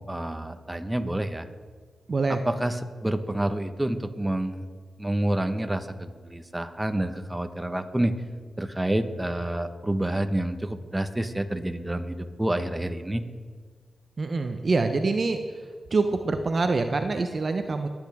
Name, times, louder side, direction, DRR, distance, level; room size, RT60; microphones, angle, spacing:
voice 1, 0.0-1.5 2.3-4.7 5.0-8.2 8.6-13.2, right 1 dB, 15° right, 8 dB, 1.3 m, -28 dB
voice 2, 2.1-2.4 14.2-15.4 15.9-17.9, right 3 dB, 55° right, 7 dB, 0.8 m, -25 dB
23.5 x 9.0 x 3.6 m, 1.5 s
supercardioid pair, 40°, 0 cm